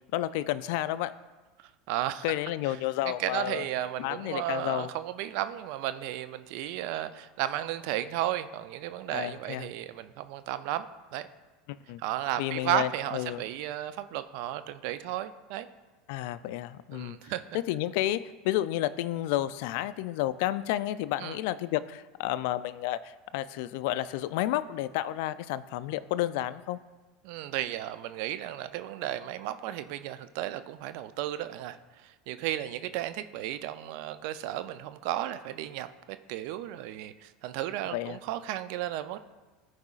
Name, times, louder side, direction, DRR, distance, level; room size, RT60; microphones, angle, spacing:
voice 1, 0.1-1.1 2.2-3.7 4.0-4.9 9.1-9.7 11.9-12.0 12.4-13.4 16.1-26.8 37.9-38.2, left 14 dB, 70° left, 15 dB, 0.3 m, -31 dB
voice 2, 1.9-2.2 2.7-2.8 3.0-10.9 11.1-11.3 12.0-15.7 16.9-17.4 21.2-21.4 27.2-31.8 32.0-39.2, right 13 dB, 65° right, 12 dB, 0.4 m, -34 dB
14.0 x 4.8 x 2.4 m, 1.2 s
hypercardioid pair, 95°, 0 cm